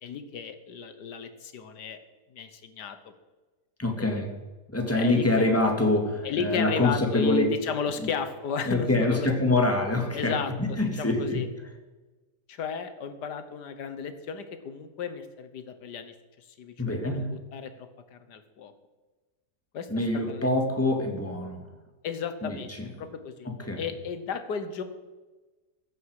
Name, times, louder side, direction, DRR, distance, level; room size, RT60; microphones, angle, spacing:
voice 1, 0.0-2.0 2.3-3.0 4.0-4.2 4.9-5.6 6.2-9.3 10.1-11.5 12.5-18.7 19.7-19.9 20.3-20.5 22.0-22.7 23.0-23.5 23.8-24.8, left 6 dB, 80° left, 10 dB, 1.8 m, -34 dB
voice 2, 3.8-4.3 4.7-7.4 8.0-8.1 8.6-11.4 16.8-17.4 19.9-21.7 22.4-22.9 23.5-23.8, left 2 dB, 10° left, 2 dB, 1.9 m, -25 dB
14.5 x 10.0 x 4.9 m, 1.2 s
omnidirectional pair, 1.8 m